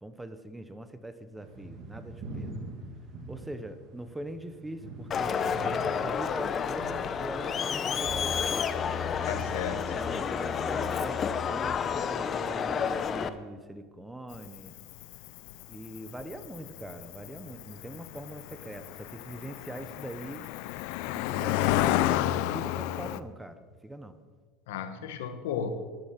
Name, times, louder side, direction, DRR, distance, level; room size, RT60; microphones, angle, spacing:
voice 1, 0.0-2.5 3.3-8.7 9.7-14.7 15.7-20.5 21.1-24.2, right 1 dB, 5° right, 0.9 m, -42 dB
sound 1, 1.4-9.5, right 2 dB, 45° right, 2.2 m, -44 dB
Crowd, 5.1-13.3, left 7 dB, 30° left, 0.8 m, -30 dB
voice 2, 9.2-9.9 24.7-25.7, left 8 dB, 85° left, 1.5 m, -34 dB
Cricket, 14.3-23.2, left 14 dB, 65° left, 0.5 m, -31 dB
12.0 x 12.0 x 5.9 m
supercardioid pair, 130°, 0 cm